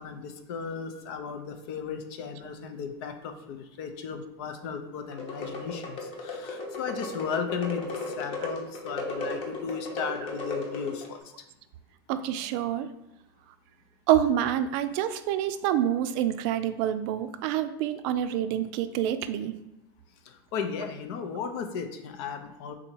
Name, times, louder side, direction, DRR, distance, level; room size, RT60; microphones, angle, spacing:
voice 1, 0.0-11.2 20.3-22.7, left 6 dB, 65° left, 6 dB, 0.6 m, -35 dB
sound 1, 5.1-11.2, left 3 dB, 45° left, 1.0 m, -35 dB
voice 2, 12.1-12.9 14.1-19.5, right 11 dB, 60° right, 10 dB, 0.4 m, -27 dB
3.8 x 2.8 x 4.4 m, 0.88 s
supercardioid pair, 125°, 14 cm